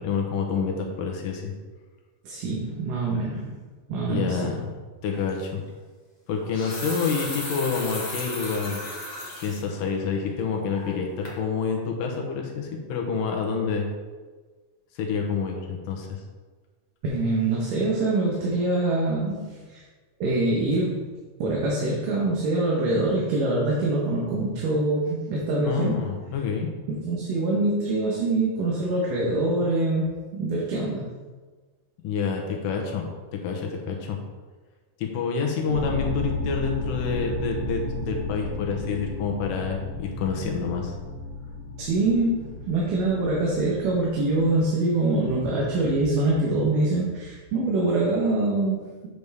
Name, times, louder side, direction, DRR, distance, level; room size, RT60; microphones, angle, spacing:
voice 1, 0.0-1.5 4.1-4.7 5.0-5.6 6.3-8.8 9.4-13.9 15.0-16.2 25.6-26.7 32.0-33.1 33.3-34.2 35.0-40.9, left 5 dB, 85° left, 1 dB, 2.5 m, -28 dB
voice 2, 2.2-3.5 3.9-4.5 17.0-19.8 20.2-21.0 21.4-26.0 26.9-31.1 41.8-49.1, right 2 dB, 75° right, -4 dB, 2.7 m, -24 dB
sound 1, 5.1-5.3 6.3-9.6 10.1-10.2 10.7-11.0 11.2-11.4, left 1 dB, 55° left, 0.4 m, -35 dB
sound 2, 35.7-44.6, left 2 dB, 60° right, 3.8 m, -33 dB
8.0 x 6.7 x 3.5 m, 1.4 s
omnidirectional pair, 3.8 m